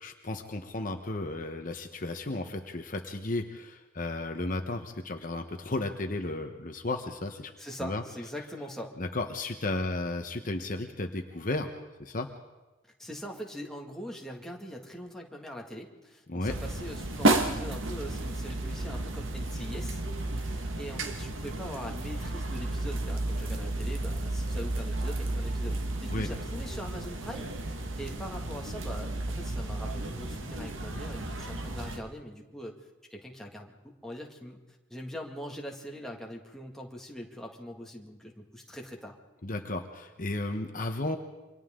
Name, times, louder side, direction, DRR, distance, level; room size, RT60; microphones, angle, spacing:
voice 1, 0.0-7.5 7.8-8.0 9.0-11.7 12.0-12.3 16.3-16.5 26.1-26.3 39.4-41.2, left 2 dB, 45° left, 5 dB, 1.1 m, -34 dB
voice 2, 7.6-8.9 13.0-20.0 20.3-32.8 33.1-34.6 34.9-39.2, equal, ahead, -1 dB, 2.1 m, -42 dB
sound 1, 16.5-32.0, right 2 dB, 90° right, 1.7 m, -32 dB
28.5 x 24.5 x 3.8 m, 1.1 s
head